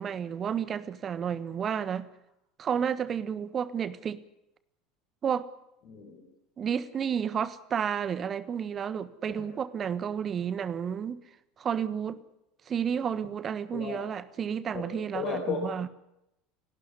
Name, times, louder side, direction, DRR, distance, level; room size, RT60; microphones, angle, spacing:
voice 1, 0.0-2.1 2.6-4.2 5.2-5.5 6.6-11.2 11.6-12.2 12.7-15.9, right 8 dB, 30° right, 1.3 m, -31 dB
voice 2, 5.9-6.3 9.3-9.5 13.7-14.0 14.7-15.7, left 6 dB, 45° left, 4.5 m, -35 dB
29.5 x 12.0 x 9.6 m
figure-of-eight pair, 70°, 0 cm